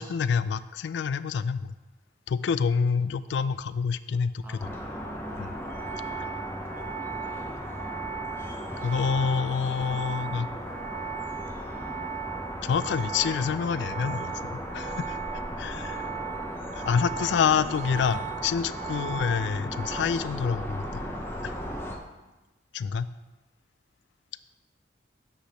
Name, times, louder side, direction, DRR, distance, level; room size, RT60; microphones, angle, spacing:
voice 1, 0.0-1.8 2.3-4.7 5.4-5.5 8.8-10.5 12.6-16.1 16.7-21.0 21.4-21.6 22.7-23.1, left 6 dB, 70° left, 15 dB, 0.3 m, -27 dB
voice 2, 4.4-5.1 6.0-7.7 16.9-17.6 18.8-18.9 21.9-22.5, equal, 10° right, -2 dB, 1.0 m, -54 dB
sound 1, 4.6-22.0, equal, 10° left, 0.6 m, -37 dB
sound 2, 5.6-20.0, right 9 dB, 40° right, 0.6 m, -38 dB
8.0 x 3.4 x 6.1 m, 1.1 s
head